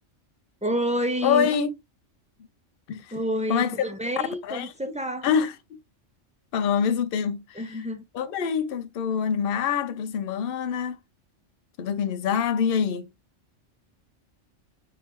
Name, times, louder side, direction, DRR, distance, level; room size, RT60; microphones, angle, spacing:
voice 1, 0.6-1.5 3.1-5.3 7.5-8.0, equal, 10° right, 0.4 m, -28 dB
voice 2, 1.2-1.7 2.9-3.1 3.5-3.9 4.4-4.7 5.2-5.8 6.5-7.6 8.1-11.0 11.8-13.1, left 7 dB, 60° left, 0.7 m, -25 dB
3.6 x 3.3 x 2.9 m
omnidirectional pair, 1.3 m